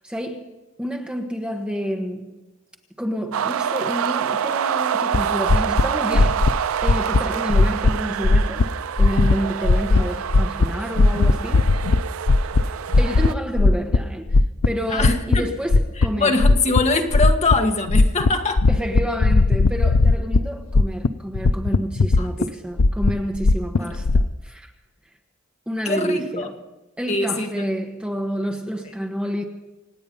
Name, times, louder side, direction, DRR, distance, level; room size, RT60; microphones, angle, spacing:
voice 1, 0.0-0.5 0.8-2.3 3.0-6.5 6.8-8.7 9.0-11.8 13.0-14.4 14.6-16.3 18.7-24.7 25.7-26.5 27.0-29.4, equal, 5° right, 1.2 m, -29 dB
sound 1, 3.3-13.3, right 8 dB, 85° right, 0.4 m, -27 dB
sound 2, 5.1-5.2 5.5-5.8 6.1-6.5 6.8-7.2 7.5-7.9 8.2-8.6 9.0-9.4 9.6-10.0 10.3-10.7 10.9-12.0 12.3-12.6 12.9-13.3 13.6-14.0 14.3-15.4 15.7-16.1 16.4-16.8 17.1-17.5 17.9-18.3 18.6-20.4 20.7-21.1 21.3-22.4 22.8-24.3, left 3 dB, 75° left, 0.6 m, -16 dB
voice 2, 14.9-15.5 16.0-18.6 22.2-22.3 23.8-23.9 25.8-26.5 27.1-27.7, left 3 dB, 35° left, 1.6 m, -23 dB
27.0 x 9.2 x 5.4 m
head